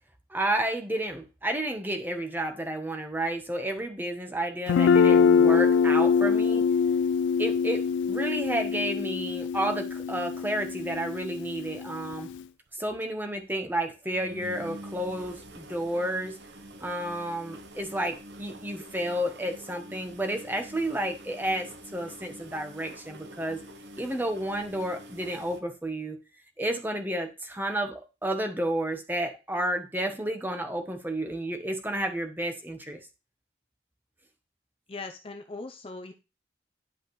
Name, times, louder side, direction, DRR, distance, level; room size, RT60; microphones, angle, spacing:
voice 1, 0.3-6.6 7.4-12.3 12.7-16.4 16.8-23.6 24.0-26.2 26.6-33.0, right 1 dB, 10° right, 5 dB, 1.1 m, -31 dB
Guitar, 4.7-12.4, left 6 dB, 80° left, 0.3 m, -24 dB
sound 1, 12.2-12.4 12.7-12.8 13.0-13.1 13.4-13.6 14.0-25.6, equal, 70° right, 1.0 m, -46 dB
voice 2, 34.9-36.1, left 3 dB, 30° left, 5 dB, 0.6 m, -39 dB
10.5 x 5.5 x 3.2 m, 0.29 s
head